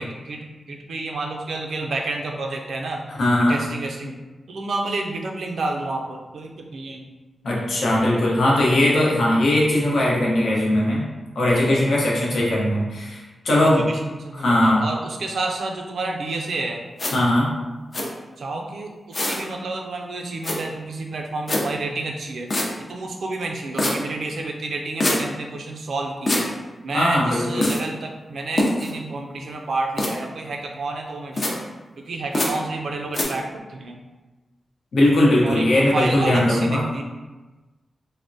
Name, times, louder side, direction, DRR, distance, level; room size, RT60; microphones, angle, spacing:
voice 1, 0.0-3.0 3.5-4.2 4.5-7.1 12.1-12.4 13.6-16.8 18.4-22.5 22.8-26.5 26.8-31.6 32.0-34.0 35.4-37.0, right 2 dB, 70° right, 1 dB, 0.4 m, -30 dB
voice 2, 3.2-3.6 7.4-11.0 11.3-13.8 14.4-14.8 17.1-17.5 26.9-27.7 34.9-36.8, left 1 dB, 80° left, -4 dB, 0.8 m, -19 dB
sound 1, 17.0-17.1 17.9-18.0 19.1-19.4 20.4-20.6 21.5-21.6 22.5-22.7 23.8-23.9 25.0-25.2 26.3-26.4 27.6-27.8 28.6-28.9 30.0-30.1 31.4-31.5 32.3-32.5 33.1-33.2, left 1 dB, 35° left, 0.4 m, -22 dB
3.4 x 2.1 x 2.6 m, 1.2 s
wide cardioid pair, 155°, 0 cm